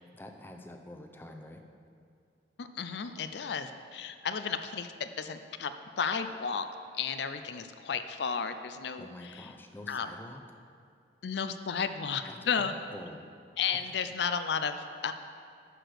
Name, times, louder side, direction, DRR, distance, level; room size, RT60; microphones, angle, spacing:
voice 1, 0.1-1.6 9.0-10.4 12.3-13.3 13.6-13.9, left 1 dB, 10° left, 3 dB, 0.6 m, -47 dB
voice 2, 2.6-6.7 7.0-9.5 9.9-10.1 11.2-12.7 13.6-15.1, left 6 dB, 70° left, 10 dB, 0.4 m, -33 dB
12.0 x 4.9 x 6.5 m, 2.3 s
head